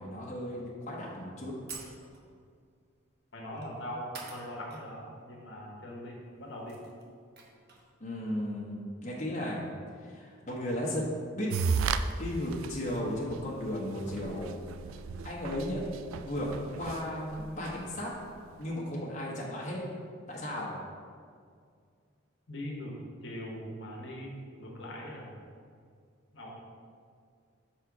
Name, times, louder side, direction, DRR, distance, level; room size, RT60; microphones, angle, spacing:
voice 1, 0.0-1.5 8.0-9.6 10.0-11.0 11.3-11.5 12.2-14.6 15.2-15.8 16.2-16.5 16.8-18.1 18.6-19.8 20.3-20.7, left 1 dB, 35° left, -5 dB, 1.0 m, -35 dB
sound 1, 1.0-1.1 1.7-2.4 3.5-3.7 4.1-4.8 5.1-5.2 6.2-6.3 6.5-7.9, right 4 dB, 55° right, 1.0 m, -47 dB
voice 2, 3.3-6.8 22.5-23.0 23.2-24.3 24.6-25.3 26.3-26.6, equal, 60° left, -2 dB, 1.1 m, -41 dB
sound 2, 11.5-12.0 12.5-12.7 13.3-13.4 13.7-13.8 14.1-17.8, right 6 dB, 85° right, 0.3 m, -33 dB
6.1 x 4.3 x 4.7 m, 2.2 s
head